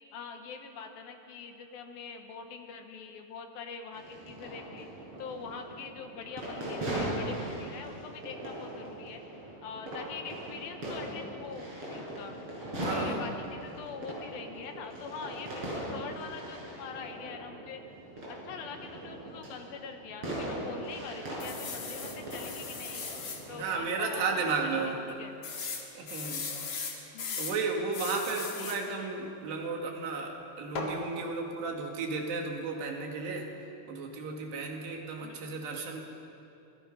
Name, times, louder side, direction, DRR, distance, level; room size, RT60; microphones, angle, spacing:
voice 1, 0.1-4.9 5.2-9.2 9.6-12.3 12.8-17.8 18.3-23.1 23.5-25.4 27.1-27.5 28.6-29.1 35.2-35.4, left 5 dB, 70° left, 5 dB, 2.9 m, -44 dB
sound 1, 3.9-23.7, right 1 dB, 35° right, 6.7 m, -39 dB
voice 2, 12.8-13.2 23.5-25.0 26.0-26.5 26.9-33.5 33.9-36.0, right 4 dB, 85° right, 1 dB, 4.3 m, -34 dB
sound 2, 21.4-23.4 23.9-24.1 24.3-24.4 25.4-27.6 27.9-28.8 30.7-31.0, left 4 dB, 45° left, 2.4 m, -38 dB
27.0 x 20.5 x 5.5 m, 2.8 s
omnidirectional pair, 4.7 m